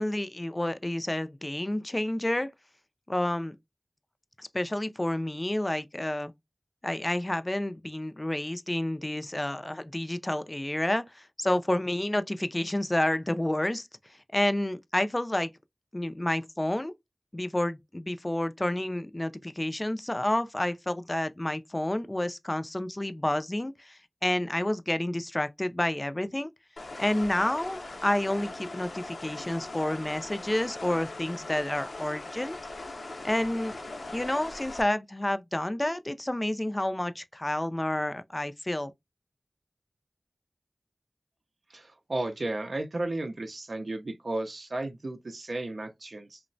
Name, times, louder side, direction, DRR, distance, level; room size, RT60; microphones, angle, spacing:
voice 1, 0.0-2.5 3.1-3.6 4.4-6.3 6.8-13.9 14.3-15.5 15.9-16.9 17.3-26.5 27.0-32.6 33.2-33.8 34.1-38.9, left 1 dB, 25° left, 0.3 m, -29 dB
sound 1, 26.8-34.8, left 2 dB, 85° left, 0.6 m, -40 dB
voice 2, 41.7-46.4, right 2 dB, 65° right, 0.4 m, -34 dB
2.9 x 2.1 x 2.5 m
wide cardioid pair, 60°, 0 cm